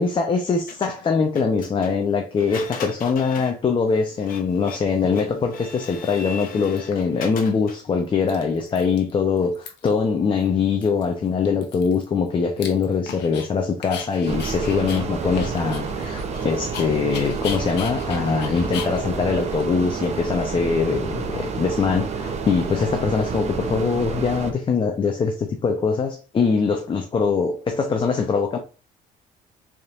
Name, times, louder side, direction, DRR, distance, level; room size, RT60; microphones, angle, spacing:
voice 1, 0.0-28.6, left 5 dB, 30° left, 0.6 m, -22 dB
Printer, 0.7-7.9, left 5 dB, 55° left, 0.8 m, -39 dB
Dog, 5.1-5.2 5.8-6.3 6.6-7.4 7.7-7.8 8.1-9.1 9.4-10.0 10.4-10.5 10.8-13.5 13.8-20.4, left 7 dB, 85° left, 0.9 m, -39 dB
sound 1, 14.2-24.5, right 5 dB, 40° right, 0.6 m, -29 dB
4.1 x 3.5 x 2.5 m
cardioid pair, 110°, 17 cm